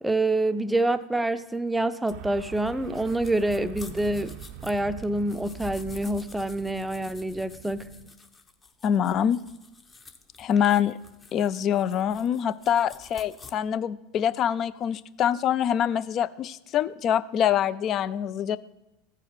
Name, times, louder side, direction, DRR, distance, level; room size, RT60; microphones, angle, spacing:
voice 1, 0.0-4.3 4.6-7.9, right 2 dB, 5° right, 11 dB, 0.5 m, -27 dB
sound 1, 2.1-13.5, left 4 dB, 25° left, 0.8 m, -49 dB
sound 2, 2.1-8.1, right 10 dB, 60° right, 0.5 m, -44 dB
voice 2, 8.8-9.4 10.4-11.0 11.3-18.6, left 9 dB, 45° left, 17 dB, 0.4 m, -25 dB
14.0 x 4.9 x 4.9 m, 0.94 s
hypercardioid pair, 95°, 0 cm